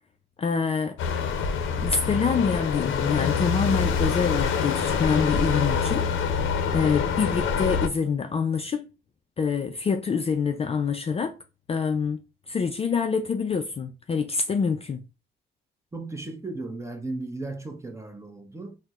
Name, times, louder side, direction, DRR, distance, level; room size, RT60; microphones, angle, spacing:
voice 1, 0.4-1.0 1.8-6.1 6.7-8.9 9.4-11.3 11.7-12.2 12.5-15.0, left 5 dB, 30° left, 0.4 m, -26 dB
sound 1, 1.0-7.9, left 6 dB, 80° left, 0.6 m, -25 dB
voice 2, 15.9-18.8, right 2 dB, 15° right, 0.7 m, -35 dB
4.2 x 2.1 x 2.4 m
cardioid pair, 90°, 20 cm